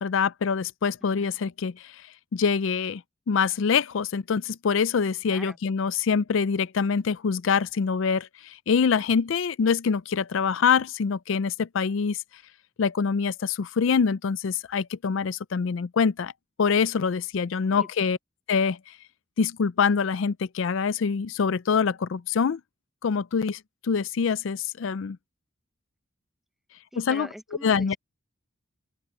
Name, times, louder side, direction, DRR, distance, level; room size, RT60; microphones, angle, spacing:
voice 1, 0.0-1.9 2.3-3.0 3.3-12.2 12.8-16.3 16.6-18.2 18.5-18.8 19.4-22.6 23.0-25.2 27.0-27.3 27.6-28.0, left 6 dB, 65° left, 0.4 m, -25 dB
voice 2, 26.9-28.0, equal, ahead, 0.9 m, -43 dB
open air
head